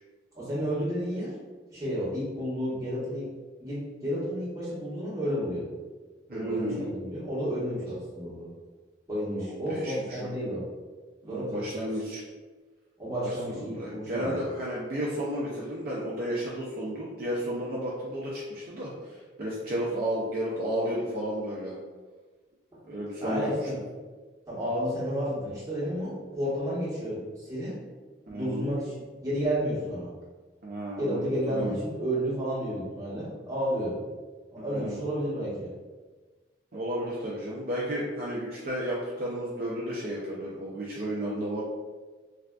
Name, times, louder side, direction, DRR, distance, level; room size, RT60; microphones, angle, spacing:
voice 1, 0.3-1.4 1.7-3.3 3.6-5.6 6.3-8.5 9.1-10.6 11.3-11.9 13.0-14.4 22.7-22.8 23.2-23.8 24.5-27.8 28.3-30.1 31.0-33.9 34.5-35.7, equal, 20° right, -9 dB, 1.0 m, -31 dB
voice 2, 6.3-6.8 9.3-10.3 11.2-12.2 13.2-21.8 22.9-23.6 28.3-28.7 30.6-31.8 34.6-35.0 36.7-41.6, equal, 50° right, -6 dB, 0.4 m, -33 dB
3.3 x 2.5 x 2.2 m, 1.3 s
head